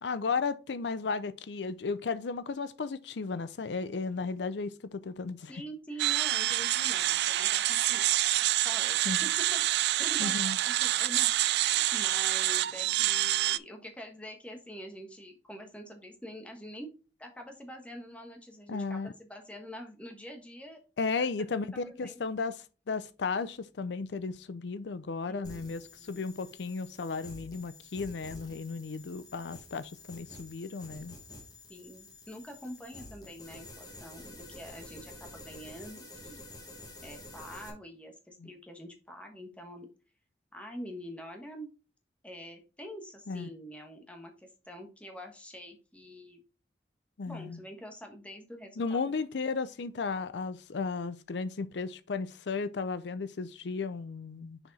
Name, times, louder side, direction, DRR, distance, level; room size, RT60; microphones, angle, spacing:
voice 1, 0.0-5.5 9.1-9.2 10.2-10.6 18.7-19.1 21.0-31.2 38.4-38.5 43.3-43.5 47.2-47.6 48.8-54.6, left 4 dB, 80° left, 0.5 m, -34 dB
voice 2, 5.5-16.9 17.2-20.8 21.2-21.3 21.7-22.2 25.3-26.2 31.7-36.4 37.0-39.9 40.5-41.7 42.2-46.4 47.2-49.0, equal, 5° left, 1.4 m, -46 dB
sound 1, 6.0-13.6, right 14 dB, 70° right, 0.3 m, -27 dB
sound 2, 25.4-37.7, left 2 dB, 20° left, 1.7 m, -49 dB
6.5 x 4.8 x 4.1 m
head